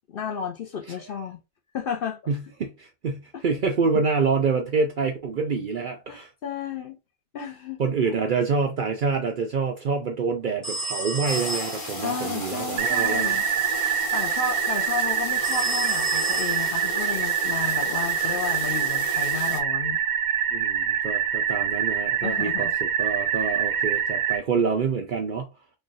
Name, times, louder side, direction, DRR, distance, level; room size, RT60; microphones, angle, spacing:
voice 1, 0.1-1.4 1.7-2.2 6.1-7.0 7.3-8.2 12.0-13.4 14.1-20.0 22.2-22.7, left 6 dB, 60° left, 0.6 m, -32 dB
voice 2, 2.3-6.3 7.8-13.4 20.5-25.5, right 5 dB, 60° right, 0.5 m, -27 dB
sound 1, 10.6-12.0 15.4-17.0, right 2 dB, 25° right, 1.5 m, -31 dB
sound 2, 11.3-19.6, left 1 dB, 30° left, 1.1 m, -35 dB
sound 3, 12.8-24.4, right 9 dB, 85° right, 1.0 m, -25 dB
3.2 x 2.3 x 3.9 m
omnidirectional pair, 1.3 m